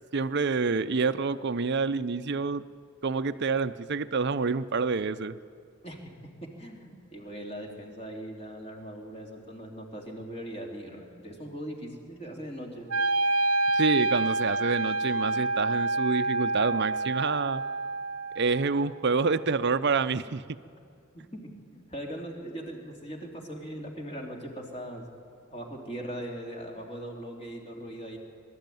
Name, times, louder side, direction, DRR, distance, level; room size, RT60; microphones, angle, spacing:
voice 1, 0.1-2.6 3.0-5.4 13.7-17.6 18.4-20.4, right 4 dB, 55° right, 13 dB, 0.6 m, -27 dB
voice 2, 5.8-12.9 21.3-25.0 25.5-28.2, right 1 dB, 30° left, 0 dB, 3.0 m, -40 dB
Wind instrument woodwind instrument, 12.9-19.0, right 2 dB, 90° right, 0.7 m, -28 dB
23.5 x 13.0 x 9.2 m, 2.3 s
head